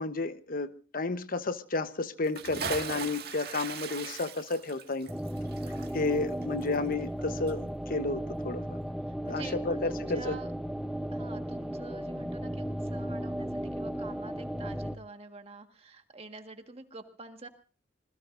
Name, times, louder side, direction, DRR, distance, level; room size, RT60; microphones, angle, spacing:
voice 1, 0.0-5.1 5.9-8.8 9.3-10.4, left 3 dB, 50° left, 10 dB, 1.1 m, -32 dB
Bathtub (filling or washing) / Splash splatter, 2.2-7.2 7.5-7.6, right 6 dB, 60° right, 1.9 m, -39 dB
sound 1, 5.1-15.0, equal, ahead, 0.8 m, -35 dB
voice 2, 6.0-6.4 9.3-10.5 11.1-17.5, right 3 dB, 35° right, 6 dB, 1.7 m, -47 dB
26.5 x 21.0 x 2.6 m, 0.38 s
head